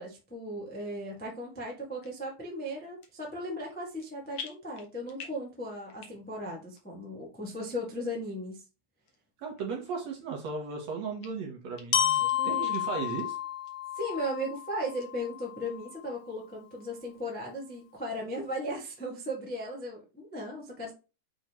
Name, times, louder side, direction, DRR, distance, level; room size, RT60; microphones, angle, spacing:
voice 1, 0.0-8.6 12.2-12.8 14.0-20.9, equal, 5° left, -2 dB, 0.7 m, -37 dB
sound 1, 2.0-2.2 2.8-3.3 3.6-4.1 4.3-5.5 5.9-6.4 6.8-6.9 7.5-7.6 8.3-8.4 9.1-9.2 9.6-9.7 10.1-10.8 11.2-11.3 11.8-11.9 12.1-12.8 13.2-13.3 13.6-13.7 14.1-14.6 15.0-15.1, left 6 dB, 60° left, 1.6 m, -46 dB
voice 2, 9.4-13.4, right 5 dB, 60° right, 1 dB, 2.1 m, -36 dB
Glockenspiel, 11.9-15.9, left 10 dB, 80° left, 1.5 m, -31 dB
9.0 x 3.8 x 3.1 m, 0.31 s
omnidirectional pair, 4.0 m